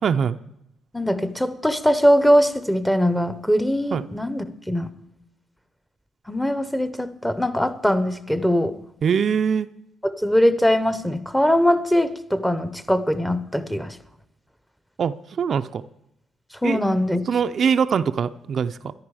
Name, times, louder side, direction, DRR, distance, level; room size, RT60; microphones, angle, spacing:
voice 1, 0.0-0.4 3.9-4.0 9.0-9.7 15.0-15.8 16.6-16.8 17.3-18.9, right 7 dB, 55° right, 9 dB, 0.4 m, -22 dB
voice 2, 0.9-4.9 6.3-8.8 10.0-14.0 16.6-17.3, equal, 5° left, 13 dB, 0.8 m, -21 dB
13.5 x 10.5 x 4.8 m, 0.83 s
cardioid pair, 90°, 0 cm